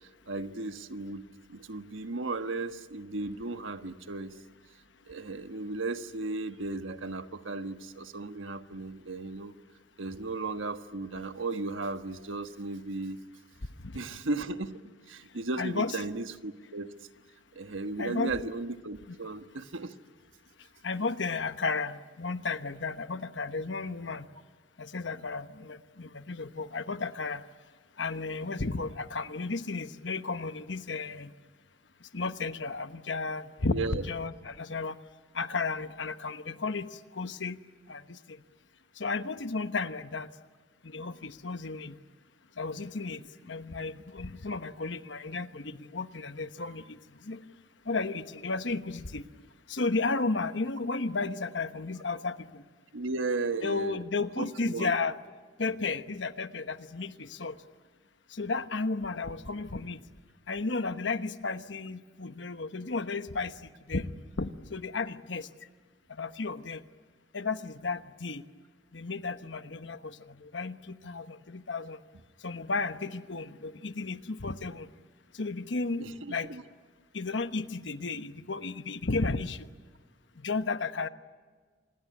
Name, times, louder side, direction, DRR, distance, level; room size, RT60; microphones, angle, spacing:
voice 1, 0.0-4.4 5.1-9.5 10.0-13.2 13.9-14.8 15.1-16.9 17.5-19.9 33.7-34.0 52.9-54.0 54.4-55.0 76.0-76.6, right 3 dB, 90° right, 8 dB, 1.4 m, -35 dB
voice 2, 15.6-16.0 18.0-18.3 20.8-24.3 24.8-27.4 28.0-31.3 32.1-35.0 35.3-37.6 37.9-38.4 39.0-40.3 40.8-42.0 42.6-47.4 47.9-49.2 49.7-52.6 53.6-55.2 55.6-57.6 58.3-60.0 60.5-64.1 64.4-65.5 66.1-66.8 67.3-68.4 68.9-72.0 72.4-74.9 75.3-76.5 77.1-79.7 80.4-81.1, left 3 dB, 65° left, 10 dB, 1.1 m, -33 dB
27.0 x 20.5 x 9.7 m, 1.5 s
head